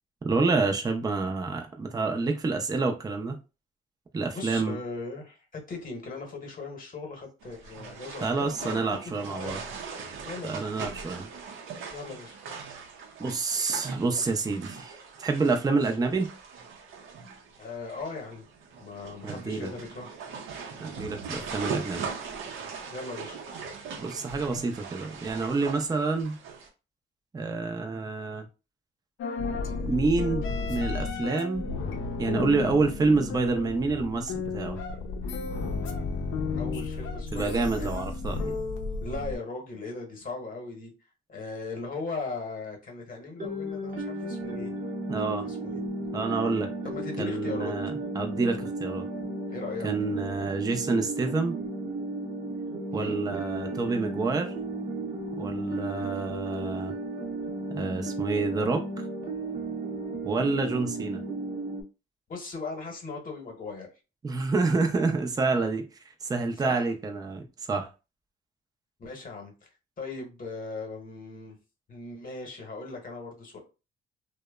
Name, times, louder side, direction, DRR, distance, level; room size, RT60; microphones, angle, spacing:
voice 1, 0.2-3.4 4.1-4.8 8.2-9.6 10.4-11.3 13.2-16.3 19.2-19.7 20.8-22.1 24.0-26.4 27.3-28.5 29.8-31.7 32.2-34.8 37.3-38.5 45.1-45.4 46.1-46.7 47.2-49.1 49.8-51.6 52.9-54.5 55.3-57.0 57.7-59.1 60.2-61.2 64.2-67.9, right 3 dB, 20° right, 0.4 m, -28 dB
voice 2, 4.3-9.6 10.2-10.7 11.9-12.4 17.6-18.5 18.8-20.1 22.9-23.4 36.6-38.0 39.0-40.9 41.3-44.7 45.2-45.8 46.8-47.7 49.5-49.9 52.9-53.2 62.3-63.9 66.6-66.9 69.0-69.7 70.0-71.6 71.9-73.6, left 3 dB, 45° left, 0.9 m, -38 dB
sound 1, 7.4-26.7, right 5 dB, 90° right, 0.6 m, -40 dB
sound 2, 29.2-39.4, left 4 dB, 80° left, 0.5 m, -32 dB
sound 3, 43.4-61.8, right 2 dB, 45° right, 0.8 m, -34 dB
2.8 x 2.1 x 2.2 m
cardioid pair, 90°, 20 cm